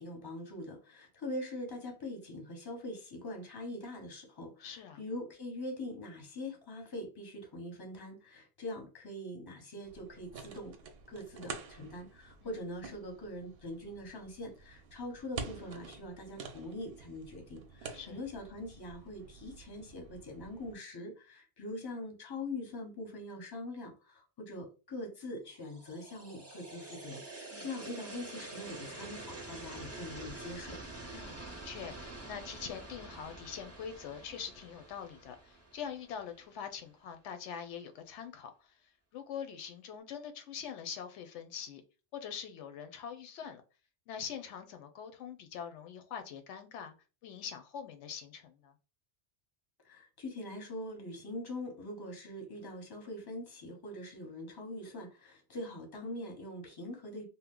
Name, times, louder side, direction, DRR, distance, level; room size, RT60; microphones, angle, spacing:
voice 1, 0.0-10.8 11.1-30.8 49.8-57.2, left 1 dB, 25° left, 0.7 m, -43 dB
voice 2, 4.6-5.0 12.4-12.5 17.9-18.2 27.5-27.7 31.1-38.8 39.1-41.8 42.1-43.6 44.1-46.9 47.2-48.7, left 7 dB, 90° left, 0.9 m, -44 dB
sound 1, 9.8-20.7, right 5 dB, 65° right, 0.7 m, -48 dB
sound 2, 25.6-36.6, right 2 dB, 20° right, 0.4 m, -47 dB
2.8 x 2.0 x 3.6 m
omnidirectional pair, 1.2 m